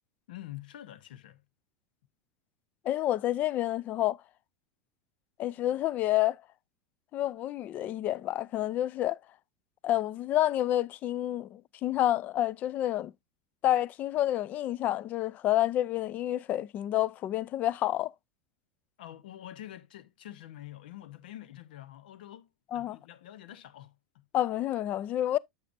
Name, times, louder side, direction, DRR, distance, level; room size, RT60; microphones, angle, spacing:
voice 1, 0.3-1.4 19.0-24.3, left 13 dB, 80° left, 0.7 m, -47 dB
voice 2, 2.8-4.2 5.4-6.4 7.1-9.2 9.8-13.1 13.6-18.1 22.7-23.0 24.3-25.4, left 13 dB, 35° left, 0.3 m, -29 dB
8.5 x 6.6 x 2.5 m
supercardioid pair, 135°, 5 cm